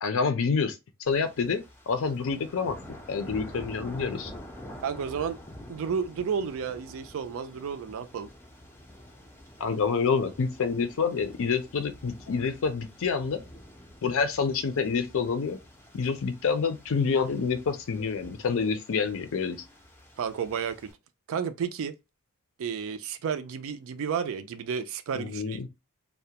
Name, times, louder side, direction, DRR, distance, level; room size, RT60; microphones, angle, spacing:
voice 1, 0.0-1.6 1.9-4.3 9.6-13.4 14.0-15.6 15.9-19.6 25.1-25.7, left 5 dB, 65° left, 0.5 m, -28 dB
sound 1, 1.0-20.9, equal, 10° left, 0.5 m, -48 dB
voice 2, 4.8-5.4 5.7-8.3 20.2-20.9 21.3-21.9 22.6-25.7, right 6 dB, 65° right, 0.4 m, -32 dB
2.3 x 2.1 x 2.7 m
head